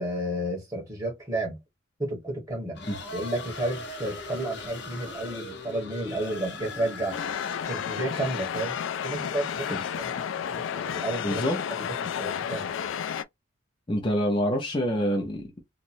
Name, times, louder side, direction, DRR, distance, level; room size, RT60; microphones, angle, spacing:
voice 1, 0.0-1.6 2.0-2.8 3.1-7.2 7.7-8.8 9.0-10.2 10.5-11.4 11.8-12.7, right 1 dB, 20° right, 1.5 m, -32 dB
sound 1, 2.7-8.1, left 2 dB, 65° left, 0.9 m, -39 dB
sound 2, 7.1-13.2, left 8 dB, 85° left, 0.3 m, -32 dB
voice 2, 11.2-11.6 13.9-15.6, equal, 25° left, 0.7 m, -26 dB
3.0 x 2.5 x 2.6 m
head